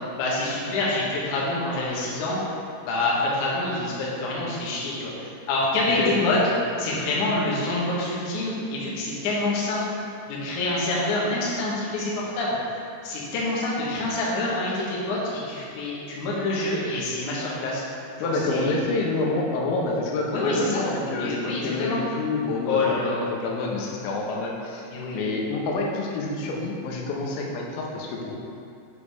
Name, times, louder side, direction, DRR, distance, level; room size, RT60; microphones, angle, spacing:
voice 1, 0.2-2.4 2.8-9.8 10.3-17.8 18.2-18.8 20.3-20.8 21.2-22.0 22.7-23.2 24.9-25.2, left 2 dB, 75° left, -6 dB, 1.8 m, -26 dB
voice 2, 18.2-24.8 25.1-28.3, left 2 dB, 90° left, -1 dB, 3.1 m, -28 dB
8.1 x 5.1 x 3.4 m, 2.5 s
omnidirectional pair, 5.4 m